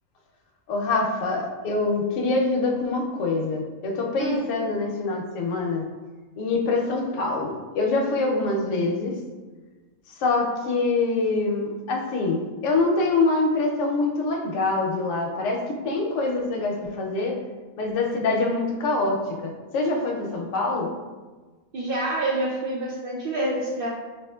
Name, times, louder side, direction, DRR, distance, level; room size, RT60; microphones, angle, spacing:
voice 1, 0.7-5.9 6.4-9.1 10.2-17.4 17.8-20.9, left 3 dB, 70° left, 1 dB, 0.9 m, -25 dB
voice 2, 21.7-23.9, right 1 dB, 80° right, -4 dB, 0.5 m, -27 dB
4.2 x 2.9 x 2.2 m, 1.3 s
omnidirectional pair, 1.5 m